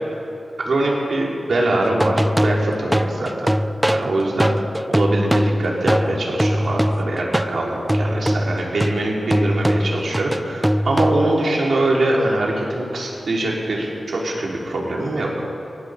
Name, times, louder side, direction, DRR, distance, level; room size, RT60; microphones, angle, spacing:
voice 1, 0.6-3.5 3.9-4.5 4.9-15.3, right 2 dB, 75° right, -3 dB, 5.3 m, -23 dB
sound 1, 1.8-7.6 7.9-11.5, equal, 10° right, 0.7 m, -21 dB
22.5 x 18.5 x 7.3 m, 2.7 s
wide cardioid pair, 90°, 0 cm